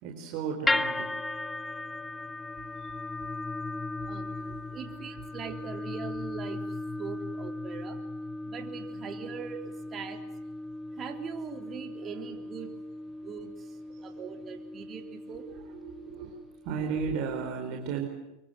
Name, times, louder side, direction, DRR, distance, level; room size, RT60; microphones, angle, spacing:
voice 1, 0.0-1.1 2.5-2.8 4.4-5.1 6.9-7.0 10.0-10.1 10.8-11.0 11.9-12.1 13.2-13.3 13.9-14.2 15.3-18.0, right 6 dB, 55° right, 2 dB, 4.4 m, -36 dB
sound 1, 0.7-16.9, left 2 dB, 10° left, 1.3 m, -37 dB
voice 2, 2.7-3.0 3.9-8.0 8.4-10.2 10.9-15.5, right 7 dB, 35° right, 6 dB, 3.8 m, -42 dB
25.5 x 23.5 x 7.8 m, 0.90 s
hypercardioid pair, 85°, 0 cm